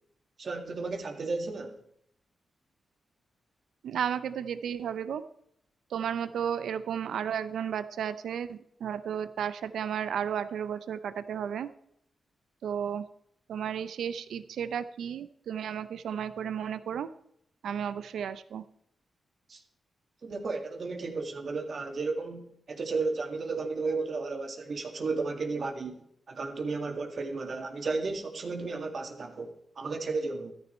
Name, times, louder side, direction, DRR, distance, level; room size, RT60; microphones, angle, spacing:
voice 1, 0.4-1.8 19.5-19.6 20.2-30.5, right 3 dB, 60° right, 4 dB, 2.0 m, -33 dB
voice 2, 3.8-5.2 5.9-11.7 12.6-13.0 13.5-17.1 17.6-18.6, right 8 dB, 80° right, 13 dB, 0.6 m, -33 dB
13.5 x 10.0 x 4.4 m, 0.72 s
supercardioid pair, 45°, 0 cm